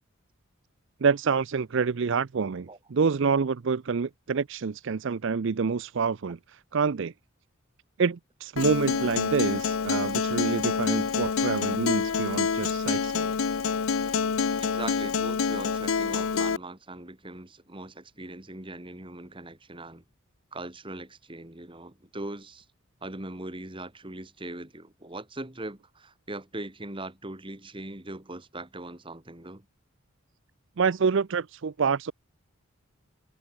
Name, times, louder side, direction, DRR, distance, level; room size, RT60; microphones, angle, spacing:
voice 1, 1.0-7.1 8.0-13.3 30.8-32.1, right 5 dB, 60° right, 0.5 m, -27 dB
Acoustic guitar, 8.6-16.6, left 5 dB, 75° left, 0.6 m, -27 dB
voice 2, 14.6-20.0 20.5-22.7 23.0-29.7, right 2 dB, 25° right, 1.9 m, -40 dB
head